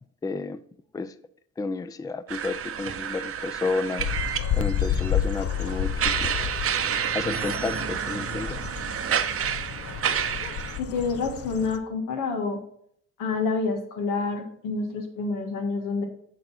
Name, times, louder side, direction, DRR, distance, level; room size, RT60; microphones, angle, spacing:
voice 1, 0.2-0.6 0.9-1.1 1.6-4.1 4.5-6.5 7.1-8.6, left 3 dB, 10° left, 0.4 m, -31 dB
sound 1, 2.3-10.8, right 8 dB, 50° right, 0.7 m, -30 dB
sound 2, 4.0-11.8, left 9 dB, 50° left, 0.7 m, -31 dB
voice 2, 10.8-12.6 13.2-16.0, left 4 dB, 90° left, 1.7 m, -28 dB
6.6 x 6.4 x 4.3 m
cardioid pair, 90°, 30 cm